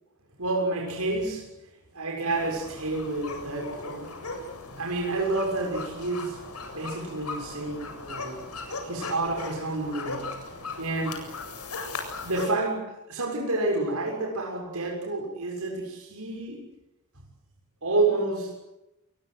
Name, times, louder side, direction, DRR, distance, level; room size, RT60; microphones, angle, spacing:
voice 1, 0.4-1.5 1.9-4.1 4.8-6.4 6.7-10.4 10.8-11.2 12.2-16.7 17.2-17.3 17.8-18.5, right 2 dB, 80° right, -1 dB, 6.9 m, -29 dB
sound 1, 2.3-12.5, left 3 dB, 90° left, 7.7 m, -38 dB
29.0 x 22.5 x 8.2 m, 0.93 s
head